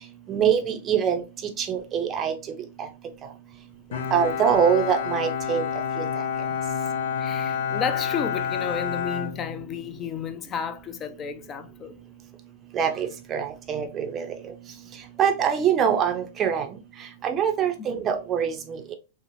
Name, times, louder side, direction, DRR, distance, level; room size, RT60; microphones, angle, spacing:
voice 1, 0.3-1.2 1.6-2.3 2.8-2.9 4.1-5.6 6.0-6.1 12.7-14.3 15.2-16.7 17.2-18.9, right 8 dB, 30° right, 0.5 m, -24 dB
Bowed string instrument, 3.9-10.1, left 7 dB, 75° left, 0.6 m, -29 dB
voice 2, 6.5-6.9 7.2-12.0 17.9-18.0, left 7 dB, 30° left, 0.4 m, -32 dB
3.0 x 2.0 x 2.6 m
hypercardioid pair, 120°, 0 cm